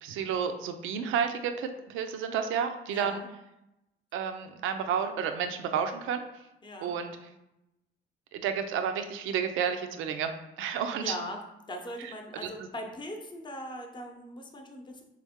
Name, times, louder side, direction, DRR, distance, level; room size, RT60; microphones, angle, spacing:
voice 1, 0.0-3.2 4.1-6.2 6.8-7.2 8.3-10.3 10.6-11.2 12.0-12.7, right 7 dB, 85° right, 7 dB, 0.5 m, -31 dB
voice 2, 2.9-3.3 6.6-6.9 11.0-11.4 11.7-15.0, equal, 25° left, 3 dB, 0.7 m, -40 dB
3.5 x 3.2 x 3.6 m, 0.90 s
cardioid pair, 90°, 20 cm